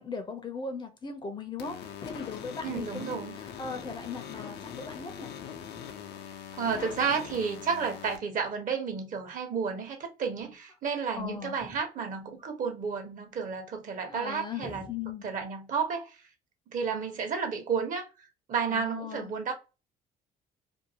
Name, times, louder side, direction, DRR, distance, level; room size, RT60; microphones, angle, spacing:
voice 1, 0.0-5.4 11.1-11.8 14.0-15.3 18.7-19.3, left 5 dB, 25° left, 0.6 m, -39 dB
sound 1, 1.6-8.2, left 8 dB, 75° left, 0.6 m, -42 dB
voice 2, 2.6-3.4 6.6-14.9 15.2-16.2 16.7-19.5, right 6 dB, 50° right, 1.1 m, -32 dB
2.6 x 2.3 x 2.8 m
cardioid pair, 110°, 17 cm